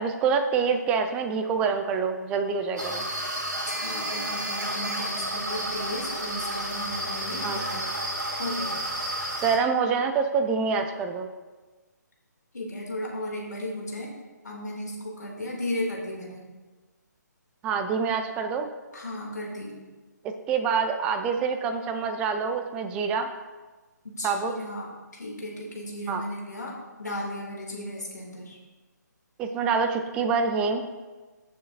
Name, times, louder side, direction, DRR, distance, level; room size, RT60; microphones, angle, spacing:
voice 1, 0.0-3.1 7.4-7.6 9.4-11.3 17.6-18.7 20.5-23.3 24.2-24.6 26.1-26.2 29.4-30.9, right 5 dB, 10° right, 7 dB, 0.4 m, -26 dB
sound 1, 2.8-9.6, right 1 dB, 70° right, 2.4 m, -31 dB
voice 2, 3.7-7.9 8.4-8.8 12.5-14.1 14.4-16.4 18.9-19.8 24.0-28.6, left 1 dB, 65° left, -2 dB, 2.7 m, -35 dB
15.0 x 6.7 x 2.7 m, 1.3 s
figure-of-eight pair, 140°, 10 cm